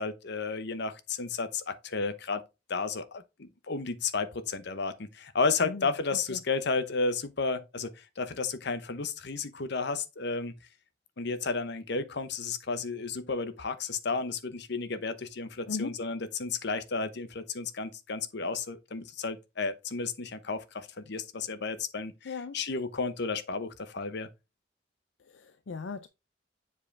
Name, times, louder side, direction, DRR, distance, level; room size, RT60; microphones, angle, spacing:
voice 1, 0.0-2.4 2.7-10.5 11.2-24.3, left 4 dB, 65° left, 0.9 m, -32 dB
voice 2, 15.7-16.0 22.2-22.6 25.2-26.1, left 4 dB, 80° left, 0.5 m, -38 dB
7.3 x 4.8 x 3.3 m
head